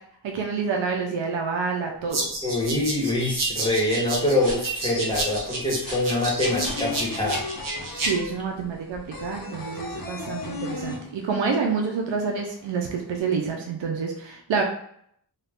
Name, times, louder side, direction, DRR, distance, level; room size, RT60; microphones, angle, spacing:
voice 1, 0.2-2.3 8.0-14.6, right 5 dB, 90° right, 1 dB, 0.5 m, -28 dB
sound 1, 2.0-9.4, equal, 20° right, 1.1 m, -44 dB
sound 2, 2.1-8.1, right 2 dB, 50° right, 0.8 m, -30 dB
voice 2, 2.4-7.4, left 1 dB, 10° left, -4 dB, 1.1 m, -25 dB
sound 3, 4.7-4.8 5.1-11.6 11.9-12.0 12.3-13.1, left 3 dB, 50° left, 0.7 m, -35 dB
2.5 x 2.3 x 3.4 m, 0.68 s
wide cardioid pair, 100°, 43 cm